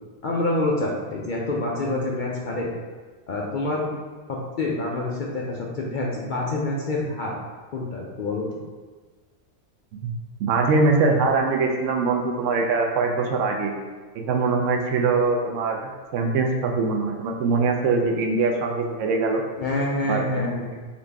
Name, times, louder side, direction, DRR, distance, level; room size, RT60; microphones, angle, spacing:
voice 1, 0.2-2.7 3.3-3.9 4.3-7.3 7.7-8.6 19.6-20.7, left 2 dB, 60° left, -3 dB, 0.5 m, -27 dB
voice 2, 10.4-13.7 14.1-19.4 20.1-20.5, right 4 dB, 75° right, 2 dB, 0.9 m, -22 dB
3.9 x 2.6 x 3.4 m, 1.4 s
omnidirectional pair, 1.3 m